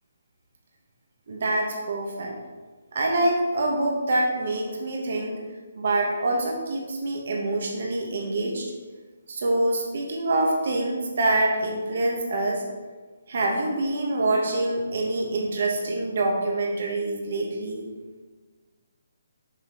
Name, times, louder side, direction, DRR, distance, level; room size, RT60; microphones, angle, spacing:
voice 1, 1.3-2.3 2.9-5.4 5.7-8.7 9.3-12.6 13.3-17.9, right 2 dB, 60° right, 0 dB, 1.3 m, -25 dB
7.2 x 4.3 x 4.8 m, 1.4 s
hypercardioid pair, 165°, 0 cm